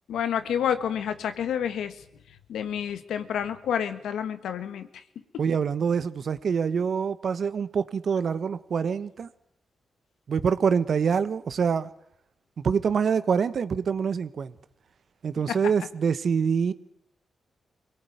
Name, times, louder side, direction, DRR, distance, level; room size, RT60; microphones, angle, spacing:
voice 1, 0.1-2.0 2.5-5.0 15.5-15.6, left 8 dB, 85° left, 1.6 m, -29 dB
voice 2, 5.4-9.3 10.3-11.9 12.6-14.5 15.2-16.7, right 6 dB, 65° right, 1.2 m, -25 dB
23.5 x 18.0 x 9.4 m
supercardioid pair, 50°, 0 cm